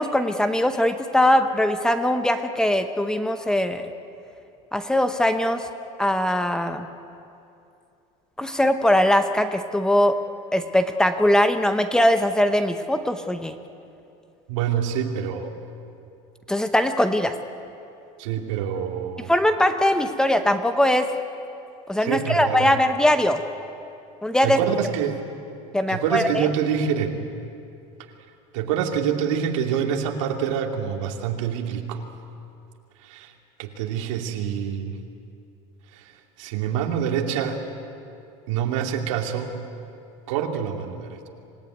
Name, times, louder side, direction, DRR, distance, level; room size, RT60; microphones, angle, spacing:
voice 1, 0.0-3.9 4.7-5.7 6.0-6.9 8.4-10.2 10.5-13.6 16.5-17.3 19.3-21.1 21.9-23.4 24.2-24.6 25.7-26.5, left 1 dB, 5° left, 8 dB, 0.7 m, -21 dB
voice 2, 14.5-15.5 18.2-19.3 22.0-22.7 24.4-25.3 25.9-27.2 28.5-32.0 33.0-33.3 33.6-35.0 35.9-36.1 36.4-37.6 38.5-39.5 40.3-41.3, right 8 dB, 85° right, 2 dB, 2.8 m, -26 dB
26.5 x 18.0 x 9.3 m, 2.6 s
cardioid pair, 170°, 16 cm